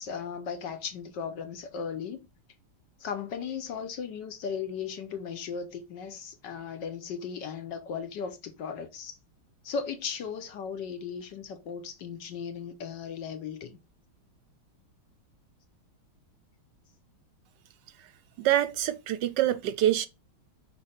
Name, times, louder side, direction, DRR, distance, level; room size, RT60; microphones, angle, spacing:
voice 1, 0.0-2.3 3.0-9.2 9.6-13.8, left 6 dB, 65° left, 1.4 m, -36 dB
voice 2, 18.4-20.1, right 12 dB, 75° right, 1.0 m, -25 dB
5.5 x 4.4 x 5.7 m
omnidirectional pair, 2.2 m